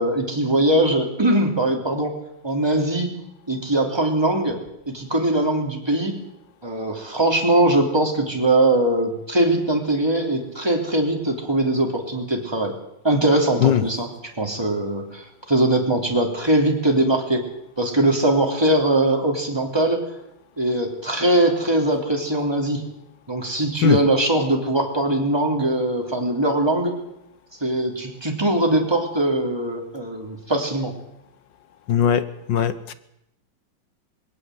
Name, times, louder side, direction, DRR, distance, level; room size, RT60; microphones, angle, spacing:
voice 1, 0.0-2.1 2.4-3.1 3.5-4.6 4.9-6.2 6.6-12.7 13.0-14.1 14.4-17.4 17.8-20.0 20.6-22.8 23.3-26.9 27.6-30.9, right 1 dB, 10° right, 2 dB, 3.1 m, -21 dB
voice 2, 31.9-32.9, left 9 dB, 65° left, 13 dB, 1.5 m, -19 dB
20.5 x 18.0 x 7.9 m, 0.80 s
omnidirectional pair, 2.3 m